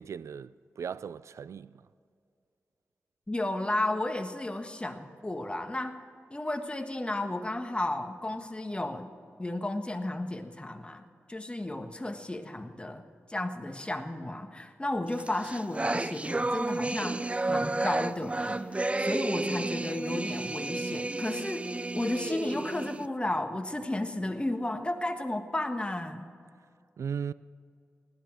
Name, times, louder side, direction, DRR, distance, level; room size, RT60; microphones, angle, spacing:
voice 1, 0.0-1.8 27.0-27.3, right 7 dB, 80° right, 0.3 m, -37 dB
voice 2, 3.3-5.9 6.3-9.1 9.4-11.0 11.3-13.0 13.3-18.8 19.0-21.6 21.9-26.2, left 1 dB, 20° left, 1.4 m, -33 dB
sound 1, 15.2-23.1, right 2 dB, 25° right, 0.6 m, -32 dB
16.5 x 11.0 x 6.2 m
cardioid pair, 55°, 5 cm